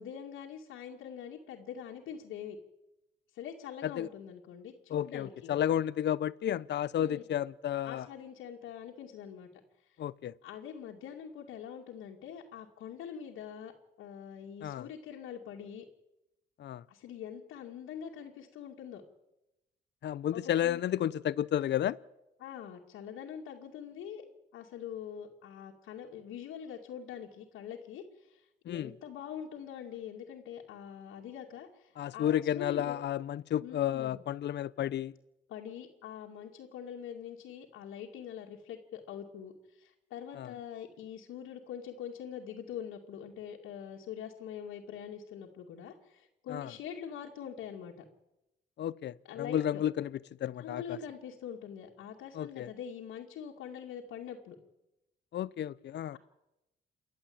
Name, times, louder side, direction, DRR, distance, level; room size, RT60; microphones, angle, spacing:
voice 1, 0.0-2.6 3.3-5.8 7.0-7.2 7.8-9.5 9.8-10.0 10.4-13.7 14.0-15.8 16.9-19.0 20.3-20.8 22.4-24.2 24.5-33.0 33.6-34.2 35.5-48.0 49.2-49.8 50.5-54.6, left 8 dB, 85° left, 2.5 m, -44 dB
voice 2, 4.9-8.1 10.0-10.3 14.6-14.9 16.6-16.8 20.0-22.0 28.7-28.9 32.0-35.1 40.4-40.5 46.5-46.7 48.8-51.0 52.3-52.7 55.3-56.2, left 11 dB, 60° left, 0.7 m, -32 dB
28.5 x 11.5 x 8.8 m
cardioid pair, 90°, 20 cm